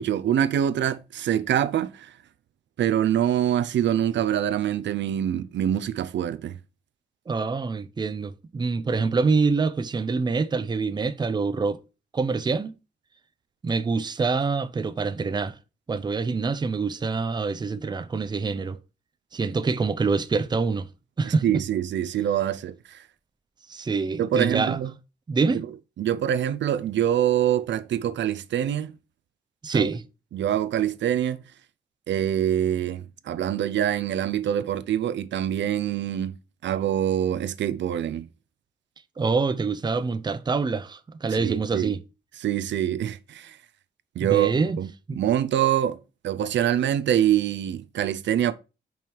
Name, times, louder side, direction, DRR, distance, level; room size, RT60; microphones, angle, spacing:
voice 1, 0.0-2.1 2.8-6.6 21.2-23.0 24.2-24.9 26.0-28.9 29.7-29.9 30.3-31.4 32.1-36.3 36.6-38.2 41.3-41.9 42.4-43.6 44.2-44.9 45.2-46.0 46.2-48.5, right 10 dB, 85° right, 0.5 m, -25 dB
voice 2, 7.3-11.8 12.1-12.7 13.6-15.6 15.9-18.8 19.3-20.9 21.2-21.5 23.7-24.8 25.3-25.6 29.6-30.0 39.2-42.0 44.2-44.8 45.1-45.2, right 4 dB, 25° right, 0.5 m, -25 dB
5.4 x 4.6 x 4.6 m
wide cardioid pair, 125°, 18 cm